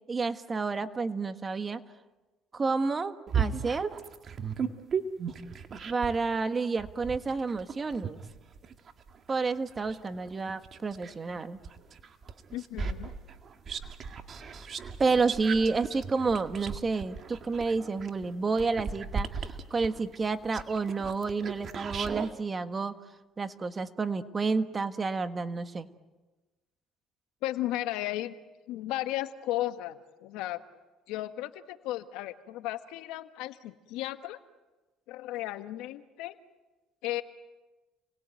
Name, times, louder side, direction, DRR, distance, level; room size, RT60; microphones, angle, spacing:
voice 1, 0.1-1.8 2.5-3.9 5.8-8.2 9.3-11.6 15.0-22.9 23.4-25.9, right 4 dB, 25° right, 9 dB, 1.6 m, -30 dB
sound 1, 3.3-6.3 6.8-11.2 11.6-22.3, right 6 dB, 40° right, 2.0 m, -36 dB
voice 2, 12.5-13.1 27.4-28.3 28.7-30.6 31.1-34.4 35.1-36.4 37.0-37.2, left 15 dB, 80° left, 9 dB, 1.5 m, -34 dB
30.0 x 20.5 x 9.2 m, 1.2 s
cardioid pair, 105°, 0 cm